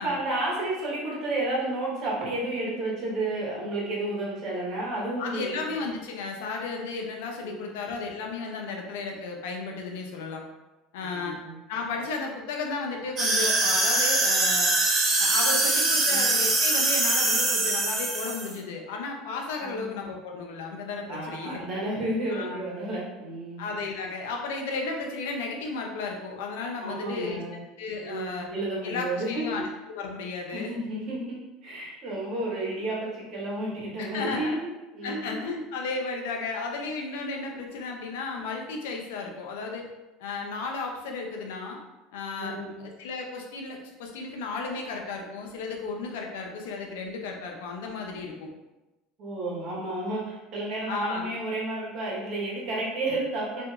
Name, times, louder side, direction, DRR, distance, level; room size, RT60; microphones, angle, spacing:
voice 1, 0.0-5.6 7.4-7.7 11.1-11.6 16.1-16.3 19.6-19.9 21.1-23.6 26.8-27.6 28.0-29.5 30.5-31.4 31.6-35.4 42.4-42.8 49.2-53.6, right 2 dB, 60° right, -4 dB, 1.1 m, -31 dB
voice 2, 5.2-10.4 10.9-11.4 11.7-14.8 15.2-21.6 22.3-22.6 23.6-27.4 27.8-28.5 28.8-30.8 34.0-34.6 35.0-39.9 40.2-41.8 42.1-48.5 50.9-51.3, left 4 dB, 80° left, 1 dB, 0.5 m, -34 dB
sound 1, 13.2-18.5, right 2 dB, 40° right, 0.8 m, -23 dB
2.7 x 2.5 x 2.4 m, 1.1 s
supercardioid pair, 95°, 0 cm